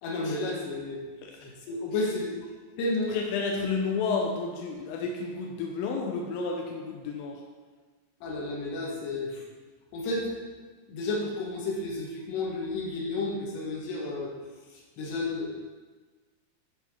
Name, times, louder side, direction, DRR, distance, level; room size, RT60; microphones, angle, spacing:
voice 1, 0.0-1.0 1.4-2.4 2.8-3.2 8.2-9.4 9.9-10.3 10.9-14.3 14.7-15.5, left 2 dB, 70° left, -2 dB, 3.1 m, -32 dB
voice 2, 1.2-1.5 3.1-7.4, left 4 dB, 85° left, 0 dB, 2.7 m, -31 dB
12.0 x 4.3 x 4.4 m, 1.4 s
omnidirectional pair, 5.9 m